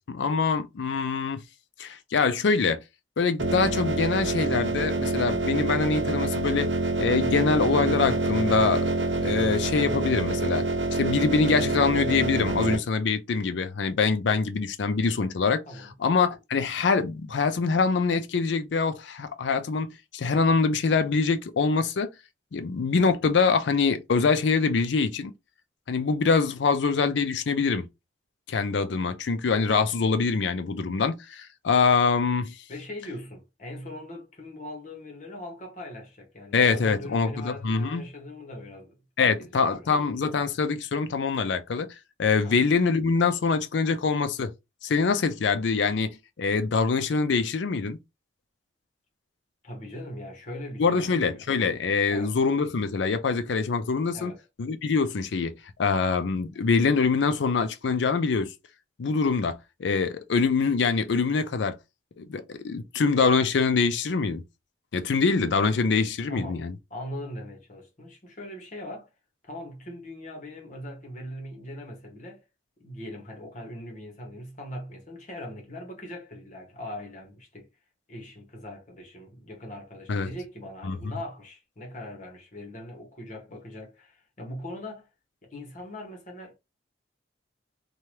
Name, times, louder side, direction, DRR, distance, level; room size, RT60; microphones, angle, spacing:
voice 1, 0.0-1.4 1.8-2.8 3.2-6.7 7.0-8.9 9.2-10.7 10.9-15.6 16.0-22.1 22.5-25.3 25.9-27.9 28.5-32.5 36.5-38.0 39.2-41.9 42.2-44.5 44.8-48.0 50.8-54.3 54.6-55.5 55.8-58.5 59.0-61.8 62.2-64.4 64.9-66.7 80.1-80.3 80.8-81.0, left 4 dB, 70° left, 0.4 m, -24 dB
sound 1, 3.4-12.8, right 2 dB, 70° right, 0.7 m, -27 dB
voice 2, 32.7-40.1 42.4-42.6 49.6-51.4 52.1-52.3 54.1-54.4 66.3-66.6 66.9-69.1 69.4-72.4 72.8-77.7 78.1-85.1 85.4-86.5, left 1 dB, 40° left, 1.1 m, -40 dB
2.8 x 2.3 x 3.1 m
head